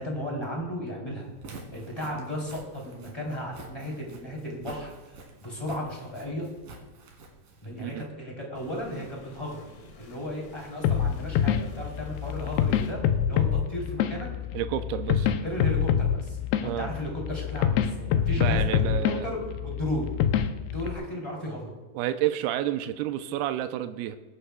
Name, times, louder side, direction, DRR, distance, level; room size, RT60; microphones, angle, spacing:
voice 1, 0.0-6.5 7.6-9.6 10.0-14.3 15.4-20.1 20.6-21.7, equal, 10° left, -2 dB, 2.7 m, -35 dB
Walk footsteps, 1.3-8.1, right 3 dB, 60° right, 3.6 m, -48 dB
sound 1, 8.6-13.0, left 2 dB, 60° left, 3.8 m, -51 dB
sound 2, 10.8-20.9, left 9 dB, 85° left, 2.6 m, -26 dB
voice 2, 14.5-15.3 16.6-16.9 18.4-19.3 21.9-24.2, right 12 dB, 85° right, 9 dB, 2.5 m, -30 dB
22.0 x 11.5 x 2.3 m, 1.2 s
omnidirectional pair, 4.5 m